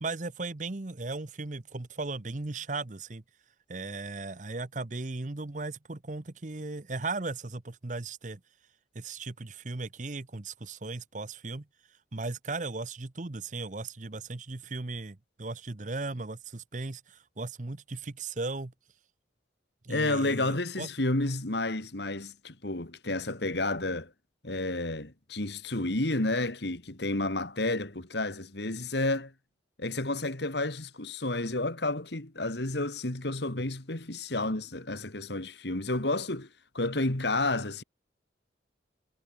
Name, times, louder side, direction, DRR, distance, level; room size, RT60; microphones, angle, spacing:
voice 1, 0.0-3.2 3.7-8.4 8.9-11.6 12.1-18.7 19.8-20.9, right 3 dB, 40° right, 0.9 m, -37 dB
voice 2, 19.9-24.1 24.4-29.3 29.8-37.8, left 2 dB, 65° left, 2.3 m, -31 dB
head